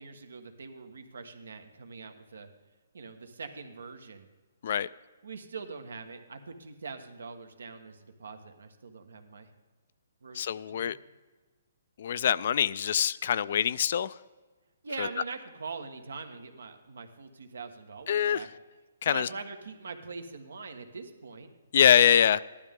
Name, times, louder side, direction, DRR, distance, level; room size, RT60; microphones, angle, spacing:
voice 1, 0.0-2.5 2.9-4.3 5.2-9.5 10.2-10.9 14.8-18.5 19.1-21.5, right 4 dB, 90° right, 6 dB, 1.4 m, -43 dB
voice 2, 10.3-11.0 12.0-14.2 15.0-15.1 18.1-18.4 19.0-19.3 21.7-22.4, left 9 dB, 50° left, 18 dB, 0.3 m, -24 dB
14.5 x 12.0 x 3.7 m, 1.3 s
hypercardioid pair, 160°, 0 cm